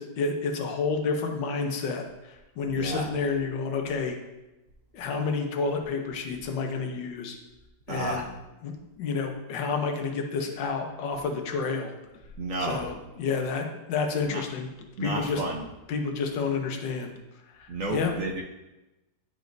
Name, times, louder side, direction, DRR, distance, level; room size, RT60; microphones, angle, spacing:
voice 1, 0.0-4.2 4.9-7.4 7.9-8.3 8.6-11.9 12.6-14.7 15.0-15.4 15.9-17.1 17.6-18.1, left 4 dB, 80° left, 3 dB, 1.6 m, -30 dB
voice 2, 2.7-3.1 7.9-8.2 12.4-12.8 14.3-14.4 15.0-15.6 17.7-18.4, right 2 dB, 60° right, 1 dB, 0.9 m, -31 dB
10.5 x 5.2 x 2.6 m, 1.0 s
omnidirectional pair, 2.0 m